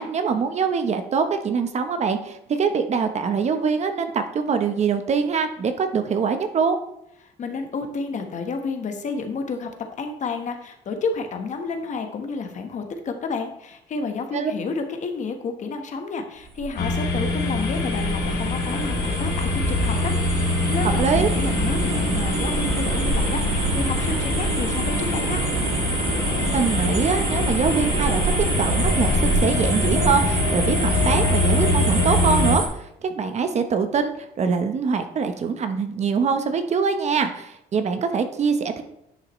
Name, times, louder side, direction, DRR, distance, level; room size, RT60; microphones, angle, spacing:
voice 1, 0.0-6.8 14.3-14.5 21.0-21.3 26.5-28.3 28.6-38.8, right 5 dB, 40° right, 8 dB, 0.9 m, -23 dB
voice 2, 7.4-25.4, left 4 dB, 45° left, 5 dB, 1.2 m, -30 dB
sound 1, 16.4-32.7, right 4 dB, 70° right, 1.9 m, -26 dB
sound 2, 16.8-32.6, left 4 dB, 70° left, 1.7 m, -25 dB
10.5 x 5.7 x 3.1 m, 0.78 s
cardioid pair, 110°, 17 cm